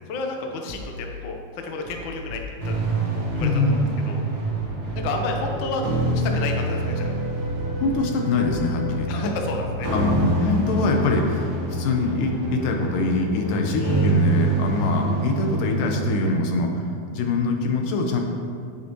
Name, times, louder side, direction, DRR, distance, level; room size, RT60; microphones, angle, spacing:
voice 1, 0.1-2.7 3.1-3.8 4.1-4.3 5.0-5.8 6.1-7.1 9.1-9.9 10.4-10.5 13.7-14.2, left 3 dB, 70° left, 2 dB, 1.1 m, -31 dB
sound 1, 0.7-1.3 1.9-2.9 3.3-3.9 4.4-6.5 7.0-8.1 8.4-9.1 9.6-11.0, left 3 dB, 75° right, 1.0 m, -39 dB
sound 2, 2.6-16.3, right 2 dB, 40° right, 2.2 m, -27 dB
voice 2, 3.4-3.9 7.8-9.1 9.9-16.8 17.1-18.2, left 3 dB, 85° left, 2 dB, 2.7 m, -23 dB
sound 3, 5.1-9.9 11.8-16.8, left 1 dB, 15° right, 2.8 m, -39 dB
16.5 x 7.9 x 3.1 m, 2.3 s
omnidirectional pair, 3.8 m